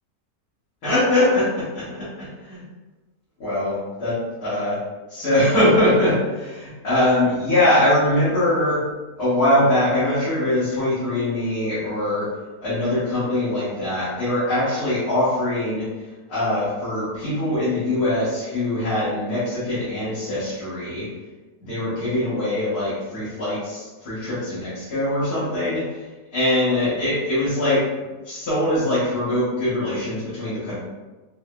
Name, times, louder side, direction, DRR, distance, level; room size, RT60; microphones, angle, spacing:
voice 1, 0.8-2.6 3.4-4.8 5.1-8.8 9.2-12.3 12.6-15.9 16.3-21.1 21.6-26.0 26.3-27.8 28.2-30.8, left 1 dB, 70° left, -13 dB, 1.7 m, -22 dB
4.6 x 2.0 x 2.3 m, 1.2 s
omnidirectional pair, 1.8 m